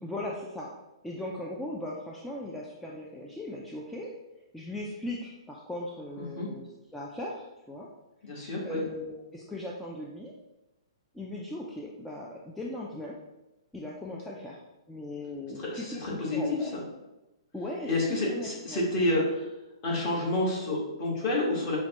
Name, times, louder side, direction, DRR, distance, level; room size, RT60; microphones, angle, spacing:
voice 1, 0.0-0.7 1.0-4.1 4.5-7.9 8.4-10.3 11.1-13.2 13.7-14.6 14.9-16.7 17.5-18.9, left 1 dB, 5° left, -4 dB, 0.3 m, -38 dB
voice 2, 8.2-8.8 15.6-16.8 17.8-19.4 19.8-21.8, left 2 dB, 35° left, -4 dB, 1.4 m, -29 dB
5.5 x 2.2 x 2.9 m, 1.0 s
hypercardioid pair, 140°, 3 cm